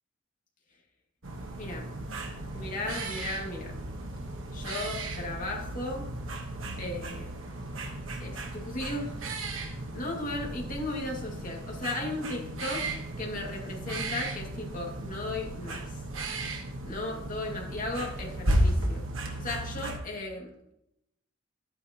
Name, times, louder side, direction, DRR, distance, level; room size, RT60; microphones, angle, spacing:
sound 1, 1.2-20.0, right 1 dB, 80° right, 1.4 m, -34 dB
voice 1, 1.5-1.9 2.5-3.8 4.5-6.1 6.8-7.3 8.2-9.2 9.9-12.8 13.2-16.0 16.8-19.1 19.4-20.7, left 2 dB, 40° left, -1 dB, 2.2 m, -36 dB
11.5 x 9.1 x 3.0 m, 0.81 s
head